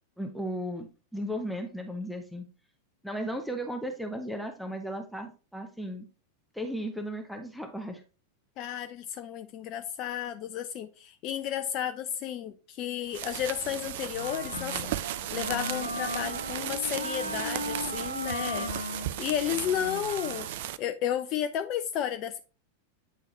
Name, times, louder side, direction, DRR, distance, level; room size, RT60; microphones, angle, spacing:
voice 1, 0.2-2.5 3.0-6.1 6.5-8.0, equal, ahead, 0.8 m, -35 dB
voice 2, 8.6-14.8 15.3-18.7 19.2-20.5 20.8-22.4, left 10 dB, 40° left, 0.4 m, -32 dB
sound 1, 13.1-20.8, right 13 dB, 55° right, 0.3 m, -36 dB
Wind instrument woodwind instrument, 14.1-20.7, left 1 dB, 85° left, 0.5 m, -37 dB
8.9 x 3.7 x 2.9 m
figure-of-eight pair, 90°, 0 cm